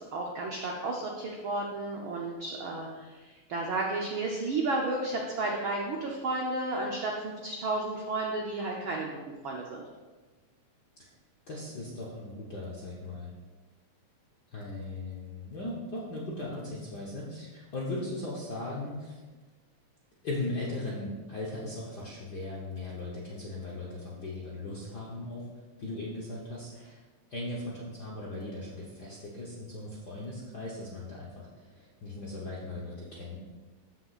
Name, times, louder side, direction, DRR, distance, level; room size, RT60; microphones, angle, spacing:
voice 1, 0.0-9.1 9.4-9.8, right 2 dB, 80° right, 0 dB, 1.1 m, -32 dB
voice 2, 11.5-13.3 14.5-19.2 20.2-25.4 25.8-26.7 27.3-33.4, left 2 dB, 60° left, -5 dB, 1.0 m, -38 dB
14.0 x 6.0 x 2.4 m, 1.3 s
omnidirectional pair, 3.3 m